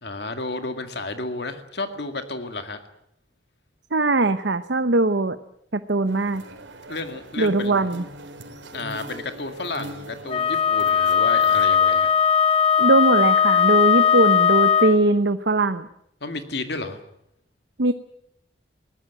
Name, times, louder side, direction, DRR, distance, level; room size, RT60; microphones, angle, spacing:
voice 1, 0.0-2.8 6.9-7.9 8.7-12.1 16.2-17.0, left 2 dB, 60° left, 7 dB, 2.2 m, -32 dB
voice 2, 3.9-5.4 5.7-6.4 7.4-8.0 12.8-15.9 17.8-17.9, right 2 dB, 70° right, 10 dB, 0.9 m, -20 dB
sound 1, 6.1-12.0, right 1 dB, 85° right, 3.6 m, -41 dB
Wind instrument woodwind instrument, 10.3-15.0, left 7 dB, 30° left, 1.1 m, -18 dB
22.0 x 18.5 x 9.1 m, 0.75 s
head